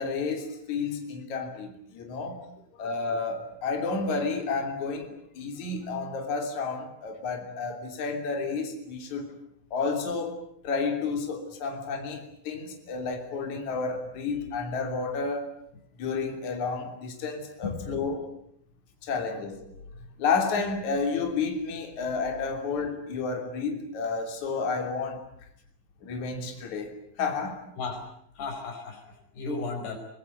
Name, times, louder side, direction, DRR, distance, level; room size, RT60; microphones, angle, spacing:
voice 1, 0.0-2.4 2.8-9.3 9.7-10.4 10.6-15.5 16.0-18.3 19.0-19.6 20.2-25.3 26.0-27.6, left 4 dB, 50° left, 4.4 m, -31 dB
voice 2, 17.6-18.1 27.8-28.0 28.4-30.0, left 4 dB, 90° left, 6.9 m, -35 dB
25.5 x 20.5 x 9.5 m
omnidirectional pair, 4.5 m